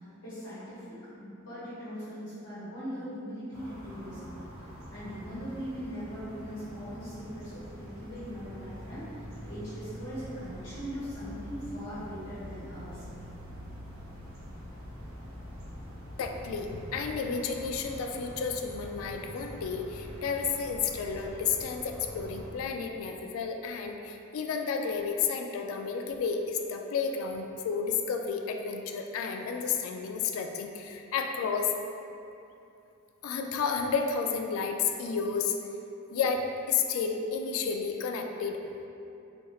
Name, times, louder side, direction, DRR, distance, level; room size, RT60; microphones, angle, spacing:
voice 1, 0.2-4.4 4.9-9.1 9.4-13.0, equal, 60° left, -13 dB, 1.1 m, -40 dB
sound 1, 3.5-22.5, equal, 90° right, 0.9 m, -46 dB
sound 2, 7.4-22.7, left 1 dB, 20° right, 0.6 m, -51 dB
voice 2, 16.2-31.7 33.2-35.5 36.1-38.6, left 5 dB, 80° left, 4 dB, 0.3 m, -31 dB
4.3 x 2.3 x 2.9 m, 2.7 s
head